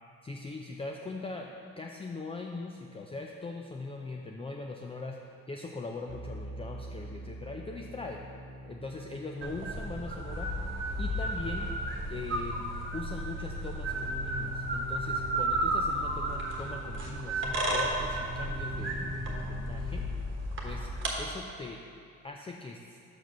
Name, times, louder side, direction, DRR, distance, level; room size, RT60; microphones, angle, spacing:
voice 1, 0.2-8.2 8.7-10.5 11.0-11.7 12.1-20.1 20.6-20.9 21.2-21.8 22.2-23.0, left 3 dB, 20° left, 1 dB, 0.4 m, -41 dB
sound 1, 6.1-12.0 13.9-20.0, equal, 60° right, 1.0 m, -43 dB
sound 2, 9.4-21.1, right 1 dB, 40° right, 1.2 m, -33 dB
6.1 x 4.9 x 5.5 m, 2.4 s
cardioid pair, 90°, 30 cm